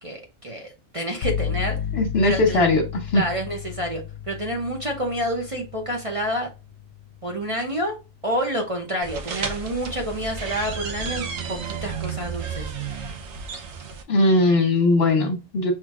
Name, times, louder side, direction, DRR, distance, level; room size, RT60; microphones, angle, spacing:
voice 1, 0.0-1.8 2.2-2.6 3.1-6.5 7.2-8.0 8.2-12.7, equal, 35° right, 1 dB, 0.7 m, -28 dB
sound 1, 1.2-8.9, left 8 dB, 75° left, 0.9 m, -34 dB
voice 2, 1.9-2.8 3.1-3.2 14.1-15.7, left 2 dB, 60° left, 3 dB, 1.4 m, -19 dB
sound 2, 9.0-14.0, right 5 dB, 75° right, 1.0 m, -32 dB
6.2 x 2.9 x 2.4 m, 0.28 s
omnidirectional pair, 1.2 m